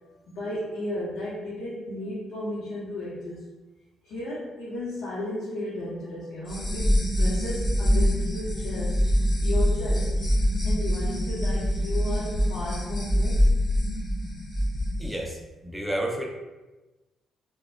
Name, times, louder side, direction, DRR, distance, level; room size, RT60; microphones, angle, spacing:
voice 1, 0.0-3.4 4.0-9.1 9.4-10.2 10.6-13.5, left 1 dB, 80° left, -9 dB, 0.8 m, -34 dB
sound 1, 6.4-15.1, equal, 40° left, 1.5 m, -24 dB
voice 2, 15.0-16.3, right 1 dB, 5° right, 0 dB, 0.5 m, -31 dB
4.1 x 2.2 x 2.3 m, 1.1 s
cardioid pair, 90°, 0 cm